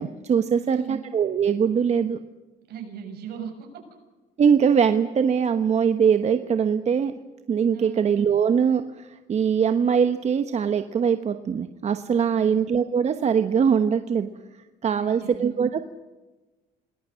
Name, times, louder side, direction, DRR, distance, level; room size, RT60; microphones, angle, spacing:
voice 1, 0.0-2.2 4.4-7.1 7.5-14.3 14.8-15.9, right 7 dB, 40° right, 8 dB, 1.2 m, -22 dB
voice 2, 0.6-1.0 2.7-3.7 7.7-8.1 12.3-12.7 14.9-15.6, right 7 dB, 70° right, 4 dB, 7.1 m, -39 dB
28.0 x 20.0 x 6.4 m, 1.2 s
cardioid pair, 110°, 17 cm